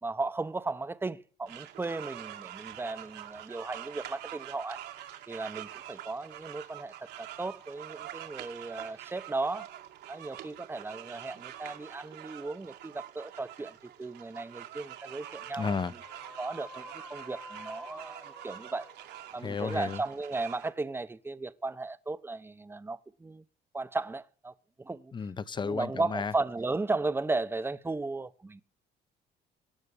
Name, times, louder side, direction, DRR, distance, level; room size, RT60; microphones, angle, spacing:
voice 1, 0.0-4.8 5.3-9.7 10.1-16.0 16.4-18.9 19.3-23.4 23.7-25.1 25.6-28.6, right 3 dB, 15° right, 0.8 m, -35 dB
sound 1, 1.5-20.7, right 12 dB, 80° right, 2.3 m, -46 dB
sound 2, 15.2-20.6, left 1 dB, 5° left, 1.2 m, -50 dB
voice 2, 15.6-15.9 19.4-20.0 25.1-26.3, left 5 dB, 25° left, 0.8 m, -33 dB
18.0 x 6.6 x 9.7 m
cardioid pair, 110°, 17 cm